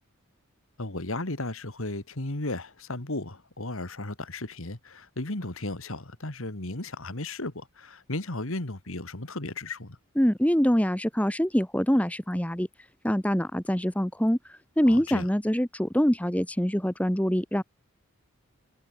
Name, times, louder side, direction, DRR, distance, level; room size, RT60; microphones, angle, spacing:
voice 1, 0.8-10.0 14.9-15.3, left 2 dB, 65° left, 2.3 m, -35 dB
voice 2, 10.2-12.7 13.0-17.6, equal, 5° left, 1.2 m, -25 dB
head